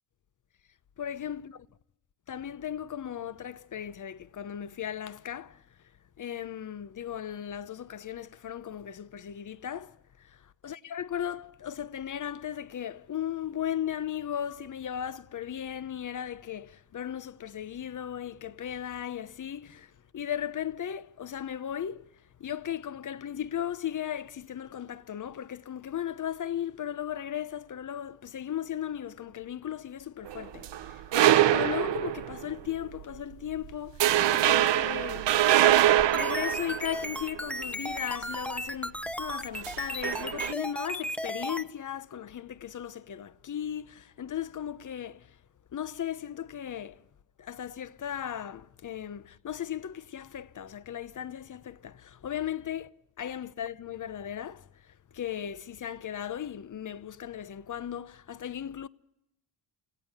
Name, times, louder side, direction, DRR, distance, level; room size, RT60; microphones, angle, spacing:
voice 1, 1.0-1.7 2.3-5.6 6.2-22.1 22.4-31.0 31.5-35.3 36.0-45.4 45.7-47.0 47.4-52.9 53.2-54.7 55.1-58.9, left 10 dB, 45° left, 0.9 m, -36 dB
sound 1, 30.3-32.5 32.9-33.2 33.5-33.7 34.0-37.5 39.6-40.5, right 12 dB, 70° right, 0.8 m, -24 dB
sound 2, 35.9-41.6, equal, 5° left, 1.0 m, -35 dB
29.5 x 16.5 x 6.6 m
cardioid pair, 85°, 44 cm